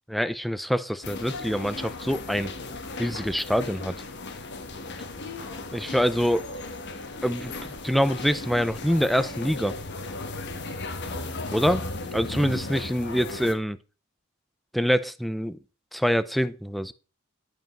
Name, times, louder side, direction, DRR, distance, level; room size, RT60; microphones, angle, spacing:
voice 1, 0.1-2.6 3.0-4.0 5.7-6.5 7.2-7.5 7.8-9.8 11.5-13.8 14.7-15.6 15.9-16.9, equal, ahead, 15 dB, 0.4 m, -25 dB
sound 1, 1.0-13.5, left 2 dB, 55° left, 1.2 m, -36 dB
11.5 x 5.2 x 5.2 m, 0.34 s
head